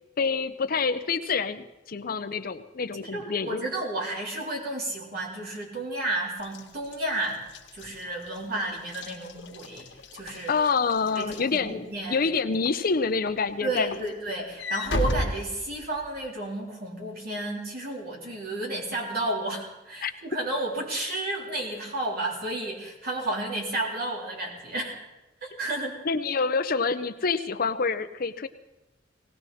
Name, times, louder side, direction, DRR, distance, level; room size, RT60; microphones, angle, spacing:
voice 1, 0.2-3.6 10.5-14.0 20.0-20.1 26.0-28.5, left 4 dB, 55° left, 11 dB, 0.7 m, -27 dB
voice 2, 3.1-7.4 7.7-9.9 10.1-10.5 11.2-12.2 13.6-25.1 25.4-26.0, right 2 dB, 55° right, -2 dB, 3.7 m, -32 dB
Walk footsteps / Slam, 6.4-12.2 12.7-12.9 13.3-16.3, left 1 dB, 80° left, 1.6 m, -35 dB
19.0 x 17.5 x 4.2 m, 0.98 s
head